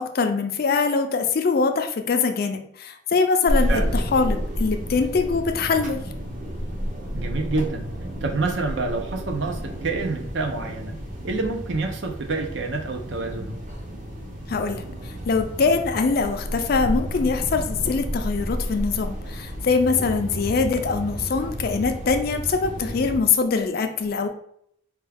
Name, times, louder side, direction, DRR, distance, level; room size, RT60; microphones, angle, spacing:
voice 1, 0.0-6.0 14.5-24.3, left 4 dB, 50° left, 6 dB, 0.4 m, -23 dB
sound 1, 3.5-23.2, equal, 45° right, 0.9 m, -31 dB
voice 2, 7.1-7.8 8.2-11.0 11.2-13.6, right 3 dB, 65° right, 3 dB, 0.6 m, -27 dB
4.5 x 2.3 x 3.3 m, 0.68 s
head